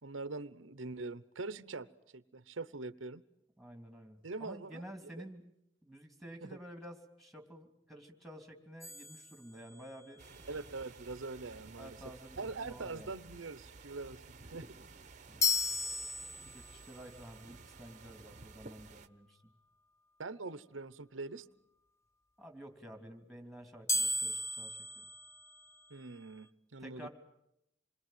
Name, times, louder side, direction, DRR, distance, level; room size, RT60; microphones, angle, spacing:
voice 1, 0.0-1.9 2.1-3.2 4.2-4.8 5.2-5.3 10.5-12.0 12.4-14.8 20.2-21.5 25.9-27.1, right 3 dB, 85° right, 14 dB, 0.9 m, -43 dB
voice 2, 3.6-5.4 5.8-10.2 11.8-13.1 15.3-15.6 16.5-19.4 22.4-25.1 26.8-27.1, right 1 dB, ahead, 4 dB, 3.1 m, -51 dB
sound 1, 8.8-10.1 15.4-16.9 23.9-26.0, left 2 dB, 15° left, 1.0 m, -35 dB
sound 2, 10.2-19.1, right 3 dB, 40° right, 1.1 m, -54 dB
27.5 x 22.0 x 9.3 m, 0.82 s
head